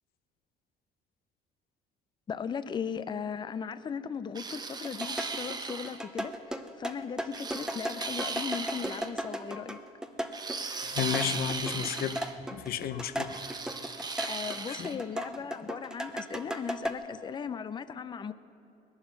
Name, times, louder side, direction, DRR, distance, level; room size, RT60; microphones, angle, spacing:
voice 1, 2.3-9.8 14.3-18.3, left 6 dB, 25° left, 14 dB, 0.5 m, -37 dB
sound 1, 4.4-6.0 7.3-9.1 10.3-12.3 13.3-15.0, right 4 dB, 25° right, 0.9 m, -37 dB
sound 2, 4.6-14.6 14.8-16.9, equal, 5° right, 0.8 m, -36 dB
voice 2, 10.9-12.2 12.5-13.5 14.1-14.3 14.7-15.0, left 9 dB, 65° left, 12 dB, 0.8 m, -33 dB
20.0 x 9.6 x 5.9 m, 2.8 s
cardioid pair, 110°, 17 cm